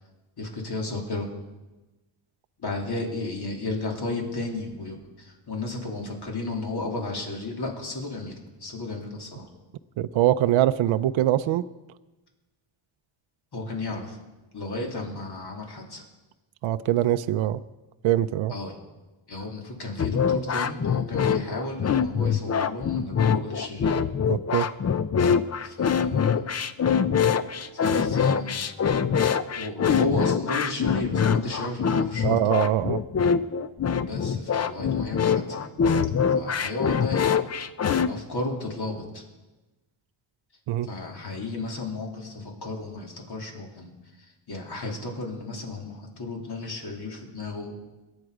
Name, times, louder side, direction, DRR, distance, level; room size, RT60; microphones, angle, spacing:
voice 1, 0.4-1.3 2.6-9.5 13.5-14.2 14.5-16.0 18.5-18.8 19.3-24.0 25.6-26.4 27.7-28.9 29.5-32.3 34.1-35.7 36.3-37.4 38.0-39.2 40.8-47.8, left 2 dB, 50° left, 0 dB, 3.2 m, -33 dB
voice 2, 10.0-11.7 16.6-17.6 18.0-18.5 24.3-24.7 32.2-33.0 40.7-40.9, right 12 dB, 70° right, 11 dB, 0.6 m, -23 dB
sound 1, 20.0-38.1, left 7 dB, 35° left, 0.6 m, -24 dB
22.5 x 9.1 x 4.9 m, 1.1 s
cardioid pair, 105°, 48 cm